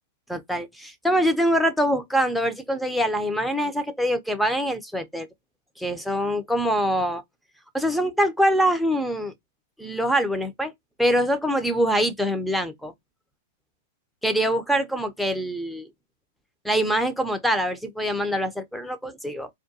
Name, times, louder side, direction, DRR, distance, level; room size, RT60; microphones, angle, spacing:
voice 1, 0.3-5.3 5.8-7.2 7.7-9.3 9.8-10.7 11.0-12.9 14.2-15.9 16.6-19.5, equal, ahead, 0.5 m, -24 dB
2.2 x 2.2 x 2.6 m
hypercardioid pair, 115°, 0 cm